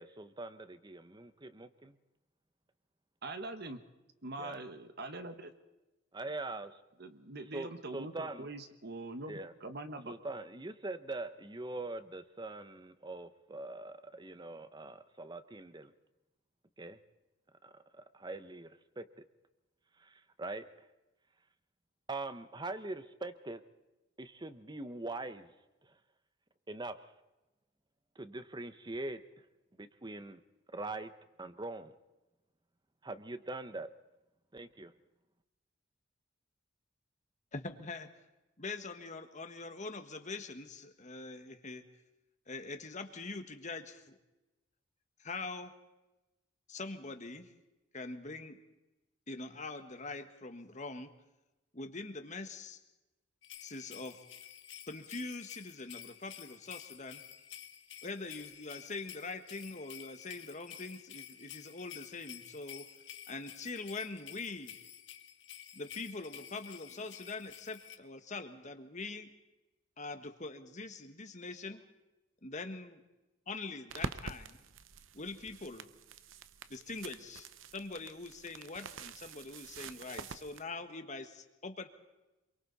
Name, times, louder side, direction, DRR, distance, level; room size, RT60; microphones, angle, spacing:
voice 1, 0.0-2.0 4.4-4.6 6.1-6.8 7.5-8.5 9.3-9.5 10.0-15.9 16.8-17.0 17.6-19.0 20.0-20.7 22.1-23.6 24.2-25.5 25.8-25.9 26.7-27.0 28.2-29.2 29.8-30.4 30.7-31.1 31.4-32.0 33.0-33.9 34.5-34.9, right 2 dB, 20° right, 12 dB, 0.9 m, -42 dB
voice 2, 3.2-3.8 4.2-5.5 7.0-10.1, right 2 dB, 55° right, 8 dB, 1.4 m, -43 dB
voice 3, 37.5-38.1 38.6-41.8 42.5-44.2 45.2-45.7 46.7-47.5 47.9-48.6 49.3-51.1 51.7-52.8 53.6-54.2 54.9-57.2 58.0-62.8 63.3-64.8 65.7-69.3 70.0-71.8 72.4-73.0 73.5-74.6 75.1-75.9 76.7-77.5 77.7-81.9, left 3 dB, 40° left, 7 dB, 1.6 m, -43 dB
sound 1, 53.4-68.0, left 10 dB, 65° left, 1.5 m, -51 dB
sound 2, 73.9-80.6, right 4 dB, 85° right, 0.8 m, -46 dB
27.0 x 23.5 x 4.2 m, 1.0 s
head